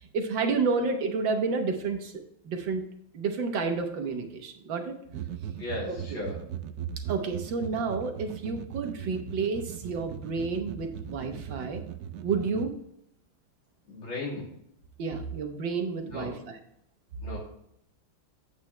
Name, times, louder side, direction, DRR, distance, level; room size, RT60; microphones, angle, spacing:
voice 1, 0.1-2.1 2.4-2.8 3.1-4.9 5.9-6.2 7.1-11.8 12.2-12.7 15.0-16.5, right 4 dB, 65° right, 5 dB, 1.7 m, -30 dB
sound 1, 5.1-12.7, right 10 dB, 80° right, 0.8 m, -39 dB
voice 2, 5.6-6.4 9.0-9.1 13.9-14.5 16.0-16.4 17.2-17.4, left 2 dB, 70° left, -4 dB, 3.7 m, -36 dB
8.4 x 8.2 x 3.2 m, 0.73 s
omnidirectional pair, 2.3 m